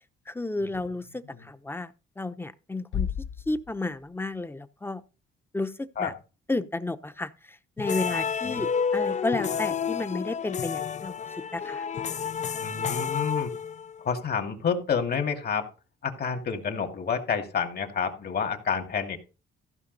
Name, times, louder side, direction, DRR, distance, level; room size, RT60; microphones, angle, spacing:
voice 1, 0.3-3.1 3.5-5.0 5.5-6.1 6.5-11.1 11.5-11.8, left 2 dB, 10° left, 0.8 m, -32 dB
Bass drum, 2.9-4.6, left 8 dB, 70° left, 0.8 m, -34 dB
sound 1, 7.8-14.1, left 7 dB, 35° left, 0.5 m, -30 dB
voice 2, 12.6-13.5 14.0-15.7 16.0-19.2, left 6 dB, 55° left, 2.4 m, -29 dB
14.5 x 5.7 x 4.1 m
cardioid pair, 90°, 20 cm